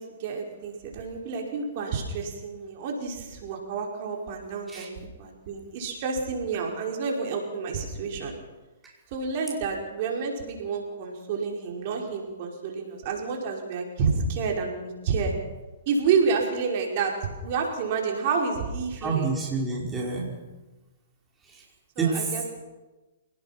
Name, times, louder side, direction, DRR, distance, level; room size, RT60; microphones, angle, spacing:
voice 1, 0.0-8.3 9.1-15.3 15.9-19.3 22.0-22.6, right 5 dB, 45° right, 0 dB, 5.3 m, -29 dB
voice 2, 19.0-20.4 21.5-21.6 22.0-22.3, right 4 dB, 10° right, -3 dB, 5.1 m, -28 dB
28.0 x 19.0 x 6.0 m, 1.2 s
hypercardioid pair, 140°, 0 cm